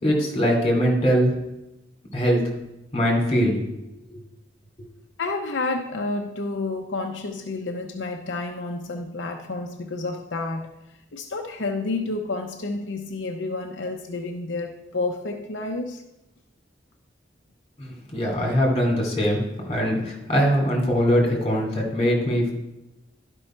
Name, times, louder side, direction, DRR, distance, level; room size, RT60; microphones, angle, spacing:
voice 1, 0.0-1.3 2.1-2.4 2.9-3.8 4.1-4.2 17.8-19.4 19.7-22.5, equal, 35° left, -1 dB, 2.7 m, -22 dB
voice 2, 5.2-10.7 11.1-16.0, left 3 dB, 85° left, 3 dB, 0.7 m, -30 dB
11.5 x 5.4 x 4.4 m, 0.93 s
head